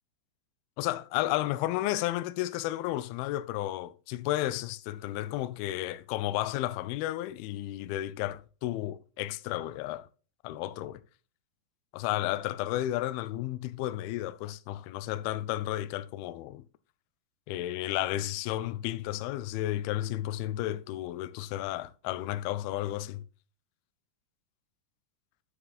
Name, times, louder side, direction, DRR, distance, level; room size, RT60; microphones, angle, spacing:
voice 1, 0.8-10.1 10.4-11.0 11.9-16.6 17.5-23.2, left 15 dB, 85° left, 2.2 m, -32 dB
8.6 x 4.9 x 4.0 m
omnidirectional pair, 5.0 m